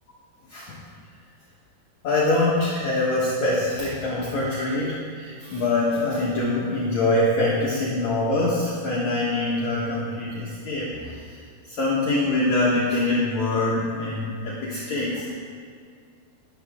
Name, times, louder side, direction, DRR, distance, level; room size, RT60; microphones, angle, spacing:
voice 1, 0.5-0.8 2.0-15.3, left 2 dB, 60° left, -6 dB, 2.1 m, -24 dB
13.0 x 11.0 x 3.6 m, 2.2 s
omnidirectional pair, 4.8 m